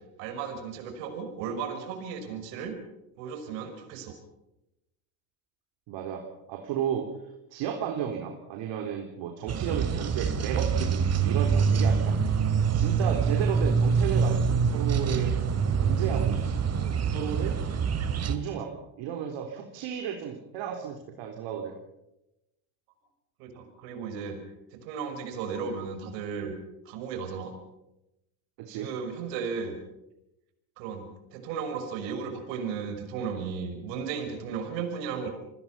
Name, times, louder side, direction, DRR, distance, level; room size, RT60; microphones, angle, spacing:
voice 1, 0.2-2.8 3.2-4.2 23.4-24.4 24.7-26.6 26.9-27.5 28.7-29.8 30.8-35.3, right 6 dB, 75° right, 6 dB, 5.8 m, -35 dB
voice 2, 5.9-6.2 6.5-7.1 7.5-12.2 12.7-15.3 15.8-16.3 17.1-17.5 18.2-18.7 19.0-21.7 28.6-28.9, right 8 dB, 60° right, 3 dB, 3.8 m, -33 dB
sound 1, 9.5-18.4, right 6 dB, 30° right, 2.7 m, -25 dB
28.0 x 20.0 x 5.8 m, 0.90 s
supercardioid pair, 115°, 50 cm